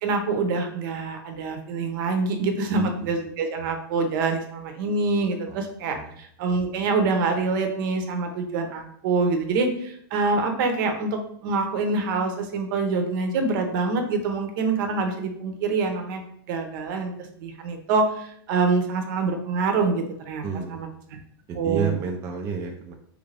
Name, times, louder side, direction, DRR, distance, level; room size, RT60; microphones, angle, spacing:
voice 1, 0.0-16.2 16.5-17.1 17.4-20.4 20.7-20.9 21.6-21.9, right 4 dB, 55° right, 5 dB, 0.7 m, -25 dB
voice 2, 2.7-3.1 5.5-5.6 5.9-6.2 20.4-20.8 21.5-22.9, right 5 dB, 20° right, 1 dB, 0.3 m, -30 dB
3.5 x 2.5 x 3.2 m, 0.66 s
supercardioid pair, 150°, 13 cm